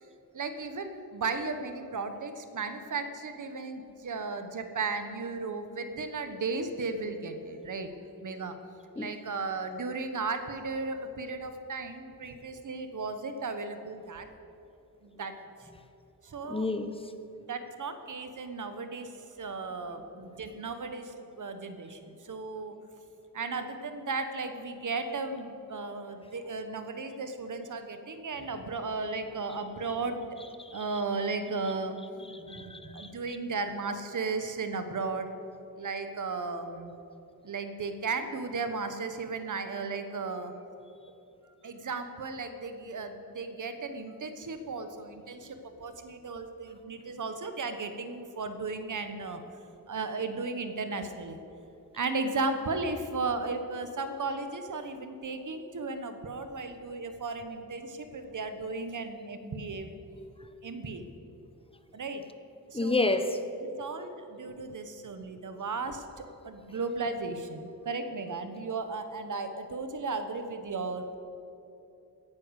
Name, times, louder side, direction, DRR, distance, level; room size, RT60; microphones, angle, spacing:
voice 1, 0.3-7.9 8.2-8.6 9.0-14.3 15.0-15.3 16.2-16.7 17.5-22.8 23.3-30.4 30.7-32.0 32.4-35.3 35.8-36.9 37.4-40.5 41.6-49.4 49.9-51.4 51.9-59.9 60.6-61.0 61.9-62.2 62.7-63.2 63.6-71.2, right 3 dB, 55° right, 8 dB, 1.3 m, -35 dB
voice 2, 16.5-17.0 30.6-30.7 32.3-33.1 62.7-63.4, left 2 dB, 15° left, 9 dB, 0.9 m, -30 dB
17.0 x 10.5 x 6.5 m, 2.8 s
wide cardioid pair, 130°, 36 cm